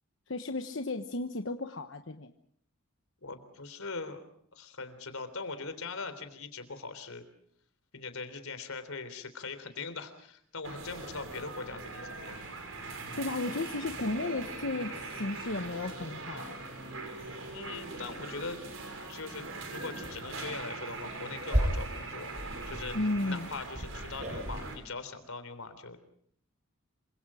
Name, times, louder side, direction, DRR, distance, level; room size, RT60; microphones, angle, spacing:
voice 1, 0.3-2.3 13.2-16.6 22.9-23.5, left 2 dB, 60° left, 6 dB, 1.1 m, -34 dB
voice 2, 3.2-4.2 4.5-7.2 7.9-12.4 17.5-18.6 19.1-22.3 22.7-23.0 23.2-26.0, left 4 dB, 85° left, 10 dB, 3.6 m, -41 dB
sound 1, 10.6-24.8, right 3 dB, 70° right, 6.2 m, -41 dB
sound 2, 17.2-17.3 17.8-17.9 18.3-18.7 19.5-19.7 20.0-20.2 20.9-24.6, equal, 35° right, 6.8 m, -35 dB
27.5 x 25.0 x 5.0 m, 0.63 s
head